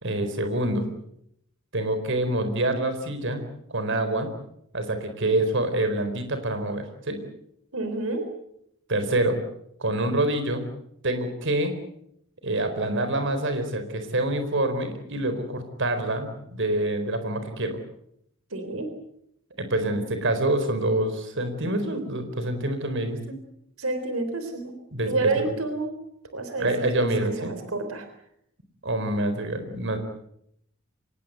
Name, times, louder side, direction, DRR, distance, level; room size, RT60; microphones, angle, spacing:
voice 1, 0.0-0.8 1.7-3.4 3.7-4.3 4.7-7.2 8.9-9.4 9.8-10.6 11.0-11.7 12.4-17.8 19.6-23.4 24.9-25.5 26.6-27.5 28.8-30.0, right 1 dB, 60° right, 8 dB, 4.3 m, -26 dB
voice 2, 7.7-8.3 18.5-18.9 23.8-24.7 25.1-25.9 26.3-26.7 26.9-27.1 27.4-28.1, right 3 dB, 85° right, 8 dB, 3.7 m, -28 dB
25.0 x 20.0 x 8.1 m, 0.74 s
head